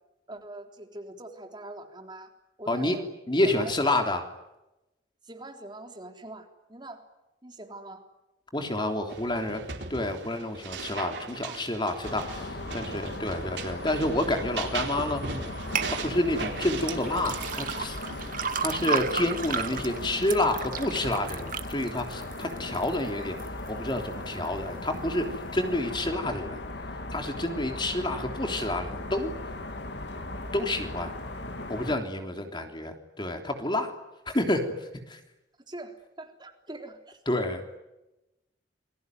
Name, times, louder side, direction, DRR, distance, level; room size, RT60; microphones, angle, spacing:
voice 1, 0.3-2.3 2.6-3.1 3.6-3.9 5.2-7.0 7.4-8.0 11.4-11.5 19.7-20.0 35.7-37.2, right 1 dB, 25° right, 4 dB, 3.7 m, -43 dB
voice 2, 2.7-3.0 3.3-4.2 8.5-9.6 9.9-15.2 15.9-18.0 18.6-23.4 23.7-25.3 25.5-26.6 27.1-29.3 30.5-31.1 31.7-33.9 34.2-35.2 37.3-37.6, left 1 dB, 25° left, 5 dB, 3.4 m, -29 dB
sound 1, 9.1-18.9, right 4 dB, 70° right, 4.1 m, -39 dB
sound 2, 12.0-32.0, left 2 dB, 65° left, 2.6 m, -38 dB
sound 3, 15.7-15.9 16.8-22.9 23.4-23.9 24.4-24.5, right 6 dB, 50° right, 1.8 m, -33 dB
29.0 x 21.5 x 9.4 m, 0.96 s
head